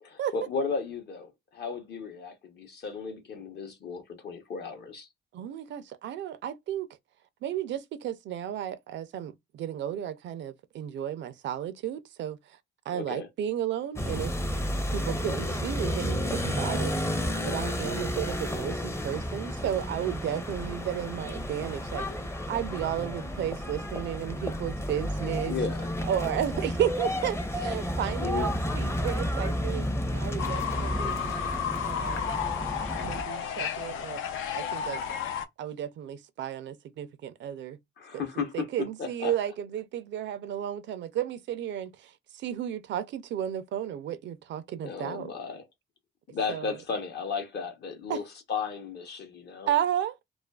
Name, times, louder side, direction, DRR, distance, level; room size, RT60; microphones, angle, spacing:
voice 1, 0.0-5.1 12.9-13.3 25.5-25.9 28.2-28.5 38.0-38.7 39.0-39.3 44.8-45.6 46.3-48.2 48.5-49.7, left 5 dB, 55° left, 0.8 m, -34 dB
voice 2, 5.3-6.9 7.4-12.4 12.9-14.4 14.9-17.1 17.4-25.6 26.1-31.2 31.8-32.3 33.0-34.2 34.5-35.0 35.6-37.8 38.1-45.3 46.5-46.7 48.1-48.2 49.7-50.2, right 10 dB, 65° right, 0.4 m, -33 dB
sound 1, 14.0-33.2, equal, 15° left, 0.5 m, -31 dB
Fowl / Bird, 30.4-35.4, left 8 dB, 80° left, 0.4 m, -32 dB
2.4 x 2.3 x 2.2 m
cardioid pair, 90°, 20 cm